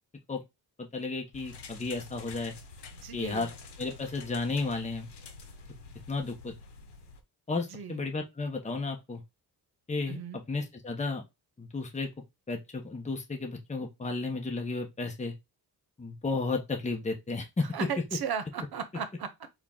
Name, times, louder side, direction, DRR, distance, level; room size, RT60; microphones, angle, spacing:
voice 1, 0.8-2.5 3.1-3.5 3.8-5.1 6.1-6.5 7.5-9.2 9.9-10.2 10.5-11.2 11.6-12.1 12.5-15.3 16.0-17.7, left 3 dB, 15° left, 0.9 m, -33 dB
sound 1, 1.3-7.2, left 4 dB, 75° left, 0.9 m, -48 dB
voice 2, 2.9-3.5 7.7-8.1 10.1-10.4 17.7-19.5, right 7 dB, 65° right, 0.9 m, -36 dB
4.4 x 2.4 x 3.6 m
cardioid pair, 80°, 40 cm